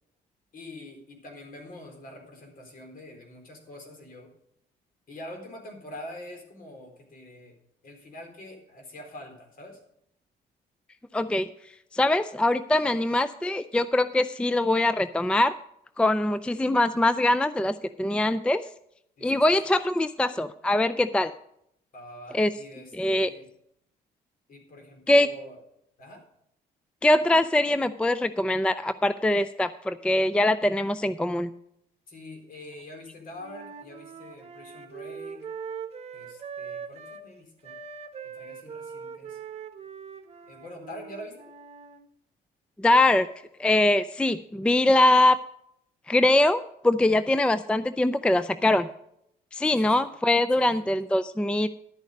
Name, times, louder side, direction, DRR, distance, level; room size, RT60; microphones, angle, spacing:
voice 1, 0.5-4.3 5.1-7.6 7.8-9.8 19.2-19.5 21.9-23.5 24.5-25.6 26.0-26.3 32.1-35.5 36.1-37.8 38.3-39.4 40.5-41.4 49.6-50.1 50.5-50.8, left 1 dB, 55° left, 3 dB, 4.2 m, -45 dB
voice 2, 11.1-11.5 11.9-15.5 16.0-18.6 19.2-21.3 22.3-22.5 22.9-23.3 25.1-25.3 27.0-31.5 42.8-43.3 43.6-45.4 46.1-48.9 49.5-51.7, left 1 dB, 5° left, 13 dB, 0.4 m, -23 dB
Wind instrument woodwind instrument, 33.4-37.3 37.6-42.0, right 6 dB, 35° right, 1.3 m, -41 dB
11.5 x 9.1 x 5.2 m, 0.75 s
cardioid pair, 100°, 18 cm